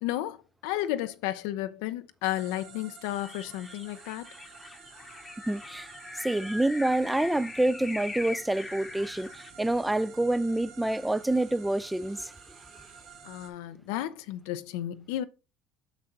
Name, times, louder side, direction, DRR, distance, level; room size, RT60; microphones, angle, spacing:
voice 1, 0.0-4.3 13.2-15.2, left 14 dB, 80° left, 0.5 m, -33 dB
sound 1, 2.2-13.5, right 6 dB, 70° right, 1.4 m, -51 dB
sound 2, 3.1-9.5, left 3 dB, 20° left, 0.9 m, -42 dB
voice 2, 5.5-5.9 6.2-12.3, right 1 dB, 5° right, 0.4 m, -27 dB
6.5 x 6.0 x 4.0 m
supercardioid pair, 90°, 0 cm